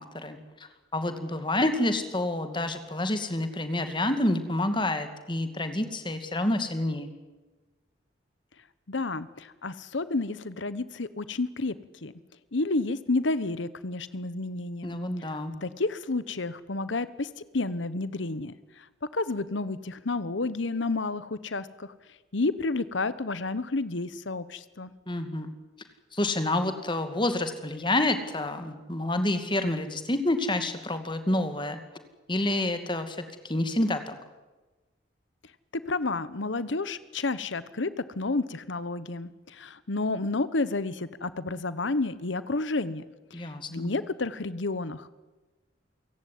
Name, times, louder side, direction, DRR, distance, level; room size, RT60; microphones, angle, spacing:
voice 1, 0.0-7.1 14.8-15.5 25.1-25.5 26.1-31.8 32.3-34.2 43.3-43.9, left 1 dB, 25° left, 9 dB, 2.3 m, -28 dB
voice 2, 8.9-11.7 12.0-12.1 12.5-15.0 15.6-17.3 17.5-18.8 19.1-21.9 22.3-24.9 35.7-43.0 43.3-45.1, left 3 dB, 80° left, 16 dB, 1.1 m, -30 dB
28.5 x 17.0 x 9.5 m, 1.2 s
head